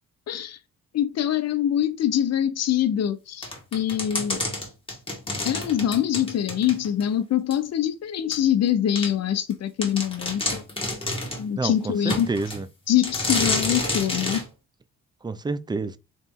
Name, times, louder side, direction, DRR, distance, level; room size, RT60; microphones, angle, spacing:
voice 1, 0.3-0.6 0.9-3.5 3.7-4.4 5.4-10.6 11.4-12.3 12.9-14.4, left 10 dB, 55° left, 0.8 m, -24 dB
sound 1, 3.4-7.1 7.5-7.6 8.3-8.4 9.0-9.1 9.5-9.6 9.8-11.5 12.1-12.6 13.0-14.5, left 2 dB, 20° left, 1.5 m, -29 dB
voice 2, 11.6-12.7 15.2-16.0, right 3 dB, 15° right, 0.4 m, -29 dB
4.1 x 3.0 x 3.7 m
cardioid pair, 90°, 30 cm